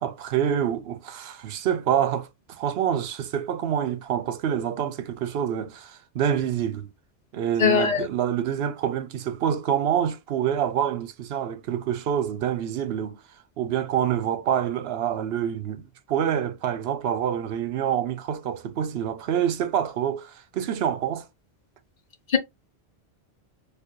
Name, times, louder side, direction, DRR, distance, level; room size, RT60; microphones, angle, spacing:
voice 1, 0.0-6.9 7.3-13.2 13.6-21.3, right 9 dB, 75° right, 0.8 m, -27 dB
voice 2, 7.6-8.0 22.3-22.4, left 6 dB, 50° left, 0.6 m, -20 dB
4.5 x 2.3 x 3.0 m
omnidirectional pair, 1.1 m